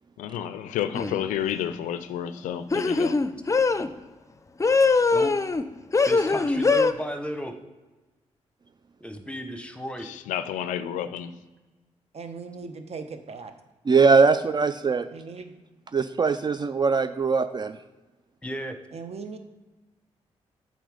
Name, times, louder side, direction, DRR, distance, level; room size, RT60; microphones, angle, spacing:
voice 1, 0.2-3.2 10.0-11.3, left 10 dB, 90° left, 12 dB, 0.4 m, -30 dB
sound 1, 0.9-1.3 2.7-3.9 4.6-5.6 5.9-6.9, left 4 dB, 25° left, 0.5 m, -22 dB
voice 2, 6.0-7.6 9.0-10.1 18.4-18.8, equal, 10° left, 7 dB, 1.0 m, -34 dB
voice 3, 12.1-13.5 15.1-15.5 18.9-19.4, right 4 dB, 55° right, 7 dB, 0.9 m, -38 dB
voice 4, 13.9-15.1 15.9-17.8, right 4 dB, 35° right, 11 dB, 0.4 m, -21 dB
7.9 x 4.0 x 4.9 m, 1.2 s
supercardioid pair, 55°, 13 cm